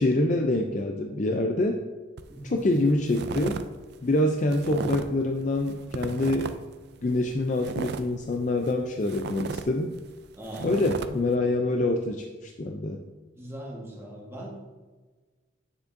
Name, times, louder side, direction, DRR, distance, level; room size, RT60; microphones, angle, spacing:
voice 1, 0.0-1.8 2.4-3.6 4.0-6.5 7.0-9.9 10.6-13.0, left 2 dB, 35° left, 3 dB, 0.4 m, -26 dB
sound 1, 2.2-2.4 2.7-3.6 3.9-5.2 5.6-6.7 7.1-8.8 9.1-11.1, right 4 dB, 55° right, 0.3 m, -34 dB
voice 2, 2.3-2.6 10.3-10.7 13.4-14.7, right 1 dB, 10° right, -3 dB, 1.3 m, -40 dB
9.5 x 7.1 x 2.6 m, 1.3 s
head